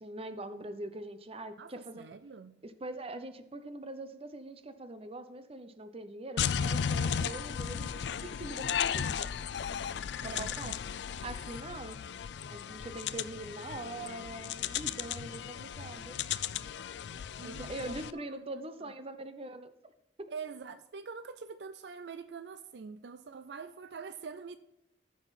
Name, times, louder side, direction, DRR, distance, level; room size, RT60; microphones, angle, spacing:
voice 1, 0.0-2.0 2.6-9.3 10.2-10.8 11.2-12.0 12.5-16.2 17.4-19.7, right 2 dB, 35° right, 0.8 m, -43 dB
voice 2, 1.6-2.6 10.2-10.8 17.4-18.4 18.8-18.9 20.3-24.6, right 5 dB, 70° right, 0.4 m, -45 dB
sound 1, 6.4-18.1, left 7 dB, 70° left, 0.4 m, -35 dB
14.0 x 5.9 x 4.2 m
head